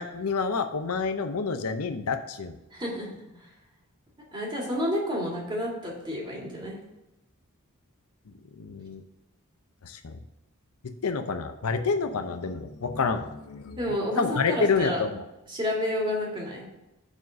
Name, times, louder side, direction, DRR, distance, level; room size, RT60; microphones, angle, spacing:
voice 1, 0.0-2.6 8.6-9.0 9.8-10.2 11.0-13.8 14.2-15.2, left 4 dB, 80° left, 8 dB, 0.7 m, -28 dB
voice 2, 2.7-3.2 4.3-6.8 13.8-15.0 15.5-16.7, equal, 20° right, -3 dB, 2.2 m, -30 dB
7.1 x 4.1 x 6.2 m, 0.96 s
head